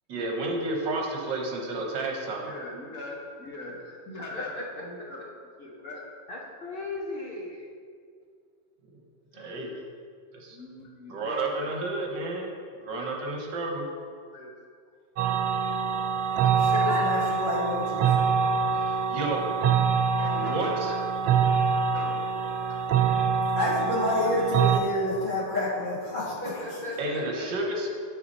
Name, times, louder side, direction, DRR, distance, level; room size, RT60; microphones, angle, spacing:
voice 1, 0.1-2.5 9.3-9.7 10.3-10.6 11.1-12.5 12.8-13.9 18.7-19.6 20.3-20.9 27.0-27.9, right 2 dB, 70° right, 1 dB, 1.7 m, -31 dB
voice 2, 2.4-6.0 10.5-11.7 13.0-13.1 13.8-13.9 14.3-14.5 20.2-21.0 21.5-22.2 23.3-23.6 23.9-24.3, left 1 dB, 50° left, -3 dB, 1.5 m, -41 dB
voice 3, 6.3-7.6 9.4-9.5 16.9-17.0 26.6-27.7, left 2 dB, 75° left, -3 dB, 0.5 m, -36 dB
sound 1, 15.2-24.8, right 6 dB, 90° right, 1.4 m, -25 dB
voice 4, 16.4-18.1 23.6-26.9, left 1 dB, 25° left, -8 dB, 2.1 m, -29 dB
8.8 x 5.8 x 4.1 m, 2.1 s
omnidirectional pair, 2.1 m